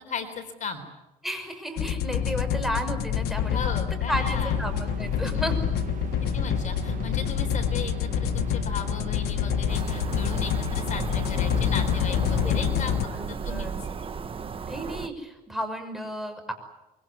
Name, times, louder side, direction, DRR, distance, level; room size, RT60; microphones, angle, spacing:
voice 1, 0.1-0.8 3.5-4.6 5.2-5.8 6.3-12.9 13.3-13.7, left 6 dB, 45° left, 6 dB, 4.0 m, -36 dB
voice 2, 1.2-3.7 4.1-5.6 12.4-13.8 14.6-16.5, equal, ahead, 5 dB, 5.9 m, -33 dB
sound 1, 1.8-13.1, left 9 dB, 75° left, 1.5 m, -27 dB
sound 2, 4.1-12.9, right 8 dB, 50° right, 1.6 m, -38 dB
sound 3, 9.7-15.1, right 6 dB, 35° right, 1.5 m, -35 dB
24.5 x 23.5 x 9.7 m, 1.0 s
cardioid pair, 110°, 17 cm